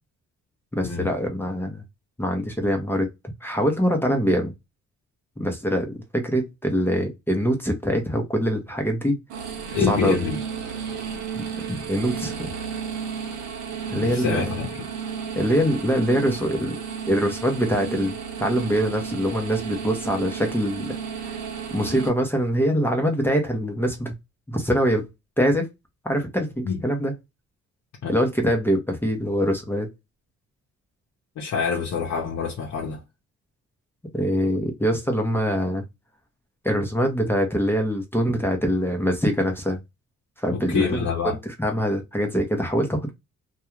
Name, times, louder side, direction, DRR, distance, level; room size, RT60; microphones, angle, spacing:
voice 1, 0.7-1.8 2.2-3.1 3.4-4.5 5.4-9.2 9.8-10.3 11.3-12.5 13.9-14.5 15.4-16.8 17.1-18.1 18.4-20.9 21.2-21.4 21.7-24.1 24.5-25.1 25.4-25.7 26.0-27.1 28.1-29.9 34.1-35.8 36.6-39.8 40.4-43.1, equal, 5° left, 0.7 m, -24 dB
sound 1, 9.3-22.1, right 7 dB, 75° right, 0.8 m, -33 dB
voice 2, 9.7-10.4 13.9-14.8 26.6-26.8 28.0-28.1 31.4-33.0 40.5-41.4, left 6 dB, 65° left, 0.8 m, -26 dB
2.3 x 2.3 x 3.0 m
cardioid pair, 90°, 30 cm